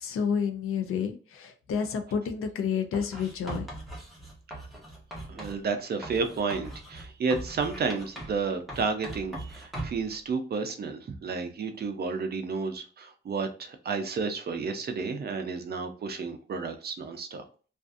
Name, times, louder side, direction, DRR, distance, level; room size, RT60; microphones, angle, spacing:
voice 1, 0.0-3.6, left 6 dB, 85° left, 7 dB, 0.5 m, -30 dB
Writing, 2.9-5.6 6.0-8.4 8.7-10.1, right 1 dB, ahead, 0.8 m, -40 dB
voice 2, 5.3-17.4, right 4 dB, 50° right, 6 dB, 0.5 m, -31 dB
2.5 x 2.4 x 2.3 m, 0.39 s
wide cardioid pair, 145°, 21 cm